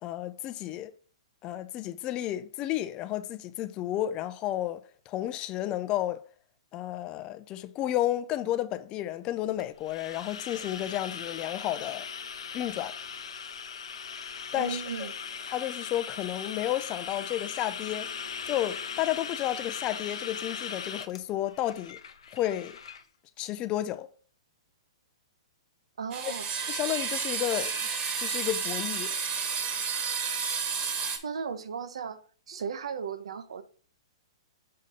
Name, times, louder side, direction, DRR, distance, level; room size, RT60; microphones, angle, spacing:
voice 1, 0.0-0.9 1.4-6.2 6.7-12.1 12.5-13.0 14.5-15.1 15.5-18.1 18.4-22.0 22.3-22.8 23.4-24.1 26.2-26.3 26.7-27.8 28.2-29.1, left 13 dB, 30° left, 0.5 m, -32 dB
sound 1, 9.6-23.0, left 6 dB, 70° left, 0.7 m, -39 dB
voice 2, 14.5-15.1 26.0-26.5 31.2-32.2 32.5-33.6, right 6 dB, 75° right, 0.8 m, -35 dB
sound 2, 26.1-31.2, right 6 dB, 30° right, 1.2 m, -31 dB
6.5 x 2.8 x 5.3 m
hypercardioid pair, 130°, 3 cm